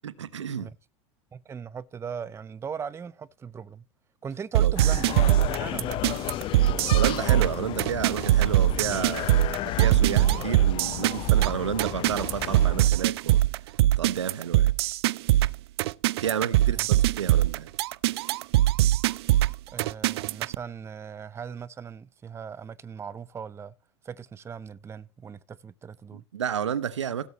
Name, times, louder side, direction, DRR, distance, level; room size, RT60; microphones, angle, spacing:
voice 1, 0.0-0.7 4.5-4.7 6.9-13.4 14.0-14.7 16.2-17.7 26.1-27.3, right 8 dB, 75° right, 1.0 m, -31 dB
voice 2, 1.3-3.8 4.2-5.1 5.6-6.0 16.7-16.9 19.7-23.7 24.0-26.2, right 6 dB, 15° right, 0.6 m, -39 dB
sound 1, 4.5-20.5, right 15 dB, 60° right, 0.5 m, -22 dB
sound 2, 4.8-12.9, left 15 dB, 35° left, 0.5 m, -33 dB
17.0 x 7.7 x 3.0 m
figure-of-eight pair, 85°, 15 cm